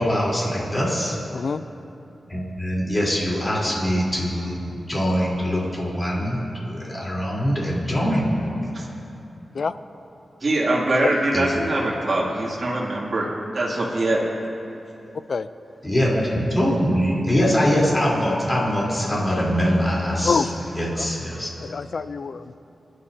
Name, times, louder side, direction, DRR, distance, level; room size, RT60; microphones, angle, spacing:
voice 1, 0.0-1.2 2.3-8.4 11.3-11.5 15.8-20.4 20.7-21.5, equal, 25° left, -5 dB, 3.5 m, -23 dB
voice 2, 1.3-1.6 9.5-9.7 11.0-11.1 15.3-15.5 20.2-20.5 21.0-21.1 21.6-22.5, left 5 dB, 65° left, 13 dB, 0.4 m, -25 dB
voice 3, 10.4-13.3 13.5-14.2, right 1 dB, 50° right, -5 dB, 2.5 m, -23 dB
24.5 x 11.5 x 2.8 m, 2.8 s
wide cardioid pair, 90°, 0 cm